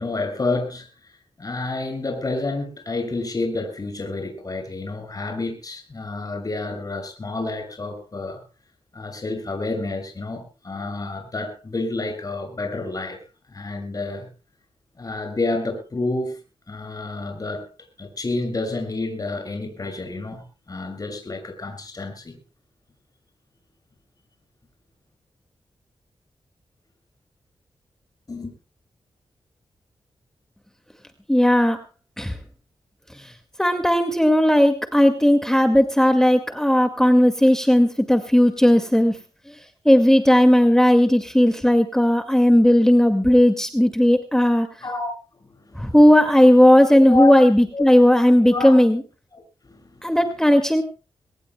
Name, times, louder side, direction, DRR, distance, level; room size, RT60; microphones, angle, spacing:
voice 1, 0.0-8.4 8.9-13.2 13.5-14.3 15.0-16.4 16.7-17.7 18.0-22.4 28.3-28.5 44.8-45.1 45.4-45.9 46.9-47.3 47.7-47.8 48.4-48.8 49.3-50.1, left 3 dB, 40° left, 6.8 m, -29 dB
voice 2, 31.3-31.8 32.2-32.4 33.1-33.3 33.6-39.2 39.5-39.6 39.9-44.7 45.8-49.0 50.0-50.8, equal, 5° left, 1.9 m, -16 dB
24.5 x 19.0 x 2.2 m
wide cardioid pair, 90°, 10 cm